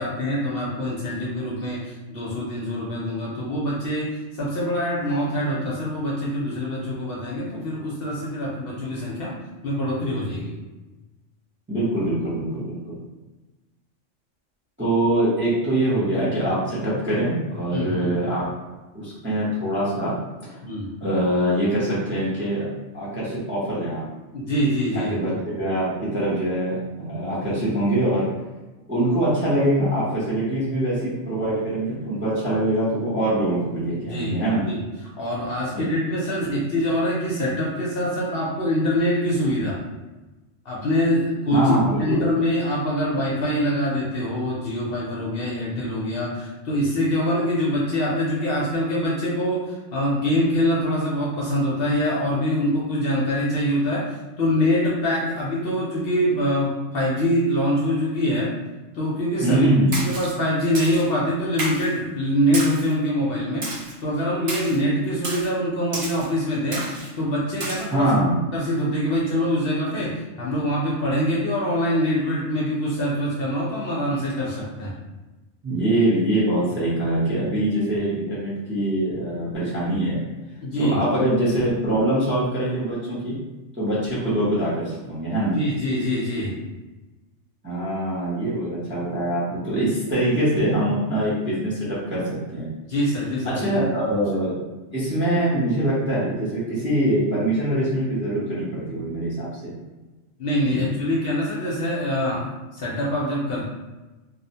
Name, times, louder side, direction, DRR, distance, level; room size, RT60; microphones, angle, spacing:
voice 1, 0.0-9.4 9.6-10.5 17.7-18.1 20.6-20.9 24.3-25.2 33.9-34.8 35.2-39.8 40.7-58.5 58.9-59.7 60.0-68.1 68.5-74.9 80.6-81.0 85.5-86.6 92.9-94.1 100.4-103.7, equal, 60° left, -5 dB, 0.7 m, -24 dB
voice 2, 11.7-13.0 14.8-18.5 18.9-20.1 21.0-22.7 22.9-24.1 24.9-28.3 28.9-34.6 35.7-35.8 36.4-36.6 41.5-42.3 59.4-60.1 67.9-68.3 75.6-80.2 80.8-83.4 83.8-85.6 87.6-92.7 93.4-94.6 94.9-99.5 100.7-100.8, right 1 dB, 15° right, -8 dB, 0.4 m, -23 dB
Splash splatter, 59.9-60.3 60.7-61.1 61.6-61.9 62.5-62.9 63.6-63.9 64.5-64.8 65.2-65.5 65.9-66.3 66.7-67.1 67.6-67.8, right 2 dB, 60° right, 0.9 m, -31 dB
2.6 x 2.0 x 2.6 m, 1.1 s
omnidirectional pair, 1.3 m